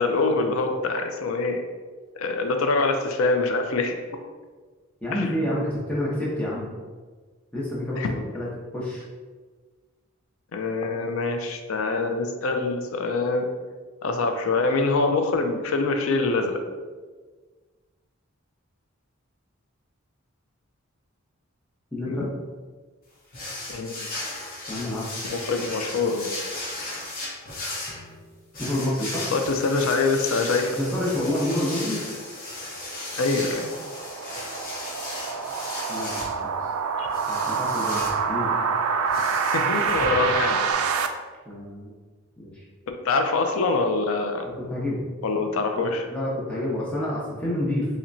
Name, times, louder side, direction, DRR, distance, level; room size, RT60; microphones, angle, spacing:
voice 1, 0.0-1.6 2.2-4.0 5.1-5.2 8.0-8.1 10.5-13.5 14.0-16.6 22.1-22.3 23.7-23.9 25.2-26.3 29.3-30.8 33.2-33.7 37.0-37.1 39.5-40.6 43.0-44.4 45.2-46.1, left 3 dB, 75° left, 5 dB, 0.4 m, -24 dB
voice 2, 5.0-6.7 7.5-9.0 21.9-22.3 24.7-25.1 28.6-29.3 30.8-32.0 35.9-36.5 37.3-38.5 41.5-41.9 42.4-42.5 44.6-45.0 45.8-45.9 46.1-47.9, left 1 dB, 5° left, -7 dB, 0.8 m, -28 dB
sound 1, 23.3-40.7, left 2 dB, 40° left, 0.8 m, -36 dB
sound 2, 32.4-41.1, right 5 dB, 80° right, 0.3 m, -27 dB
5.6 x 2.1 x 2.6 m, 1.4 s
head